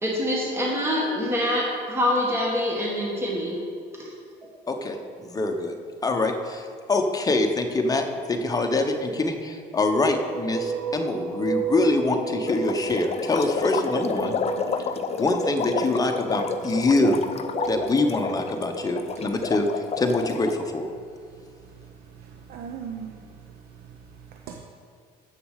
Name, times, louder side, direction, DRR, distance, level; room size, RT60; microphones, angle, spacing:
voice 1, 0.0-3.6, left 1 dB, 15° right, -3 dB, 1.7 m, -25 dB
voice 2, 4.7-5.7 6.0-14.4 15.2-17.2 17.7-19.7 20.0-20.9, left 2 dB, 20° left, 4 dB, 0.9 m, -24 dB
sound 1, 9.9-19.3, right 5 dB, 90° right, 1.5 m, -33 dB
sound 2, 12.5-20.5, left 6 dB, 40° left, 0.5 m, -30 dB
voice 3, 21.6-23.2 23.5-24.6, right 7 dB, 65° right, 3 dB, 0.7 m, -41 dB
7.4 x 6.9 x 6.4 m, 2.2 s
cardioid pair, 110°, 17 cm